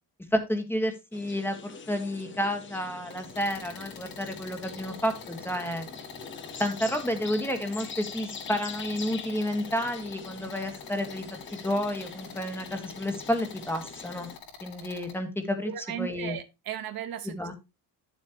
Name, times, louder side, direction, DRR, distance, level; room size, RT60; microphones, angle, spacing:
voice 1, 0.3-5.9 6.6-11.2 11.5-14.3 14.6-15.7 16.0-16.4 17.3-17.5, equal, 5° left, 6 dB, 1.6 m, -30 dB
sound 1, 1.1-14.4, left 5 dB, 30° left, 1.1 m, -44 dB
sound 2, 3.1-15.1, left 6 dB, 60° left, 3.0 m, -46 dB
voice 2, 15.6-17.3, right 10 dB, 65° right, 9 dB, 1.2 m, -36 dB
9.9 x 7.4 x 2.9 m, 0.25 s
cardioid pair, 125°, 39 cm